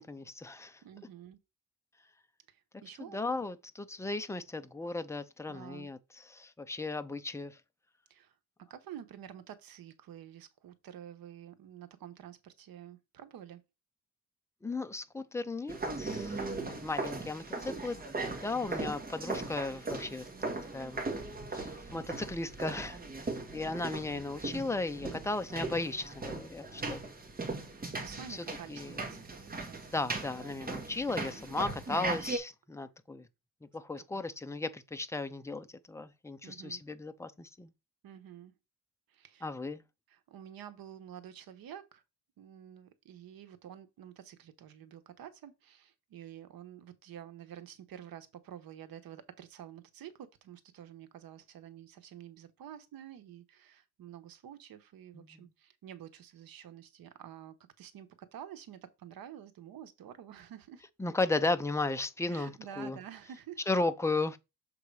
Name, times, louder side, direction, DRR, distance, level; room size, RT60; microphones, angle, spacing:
voice 1, 0.0-0.8 3.1-6.0 6.3-7.6 14.6-18.1 18.4-20.3 20.7-21.0 21.5-23.0 23.5-27.0 28.3-29.0 29.8-33.3 33.7-37.7 39.4-39.8 55.1-55.5 61.0-63.0 63.7-64.4, left 3 dB, 10° left, 0.4 m, -35 dB
voice 2, 0.8-1.4 2.5-3.2 5.5-5.9 8.1-8.3 8.7-13.6 26.2-26.4 27.7-30.1 34.0-34.2 36.4-36.8 38.0-38.5 39.1-39.5 40.1-42.0 42.4-60.8 62.3-63.6, right 10 dB, 70° right, 1.1 m, -49 dB
sound 1, 15.7-32.4, right 3 dB, 25° right, 1.6 m, -38 dB
7.0 x 3.8 x 4.7 m
cardioid pair, 150°, 36 cm